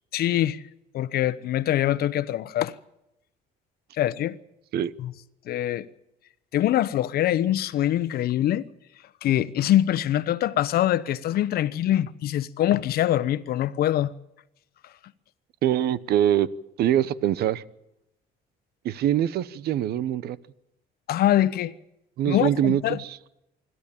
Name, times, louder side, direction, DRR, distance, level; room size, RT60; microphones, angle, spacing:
voice 1, 0.1-0.6 0.9-2.7 4.0-4.4 5.0-5.1 5.5-5.8 6.5-8.6 9.2-14.1 21.1-21.7 22.3-23.0, left 12 dB, 65° left, 1.1 m, -24 dB
voice 2, 15.6-16.5 16.8-17.6 18.8-20.4 22.2-23.2, right 11 dB, 70° right, 1.0 m, -23 dB
26.0 x 12.5 x 8.8 m
cardioid pair, 110°, 17 cm